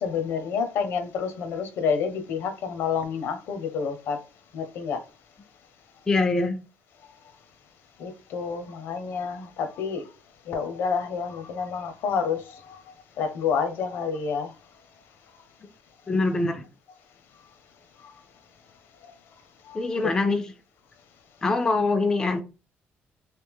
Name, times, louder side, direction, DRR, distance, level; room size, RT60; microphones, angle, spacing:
voice 1, 0.0-4.2 4.5-5.0 8.0-10.0 10.5-12.8 13.2-14.5 18.0-18.1 19.7-19.8, left 6 dB, 65° left, 0.7 m, -29 dB
voice 2, 6.1-6.6 16.1-16.6 19.7-20.5 21.4-22.4, left 3 dB, 15° left, 0.3 m, -23 dB
3.2 x 2.8 x 3.4 m
cardioid pair, 180°, 4 cm